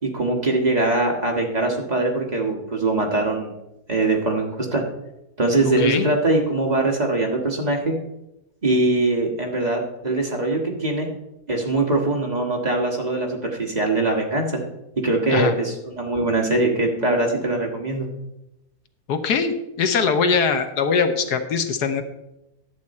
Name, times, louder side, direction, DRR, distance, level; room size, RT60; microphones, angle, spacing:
voice 1, 0.0-3.5 3.9-4.8 5.4-7.9 8.6-11.1 11.5-14.5 15.0-18.1, right 2 dB, 25° right, 0 dB, 1.5 m, -22 dB
voice 2, 19.1-22.0, left 5 dB, 85° left, 8 dB, 1.4 m, -21 dB
10.5 x 8.0 x 4.2 m, 0.90 s
omnidirectional pair, 1.7 m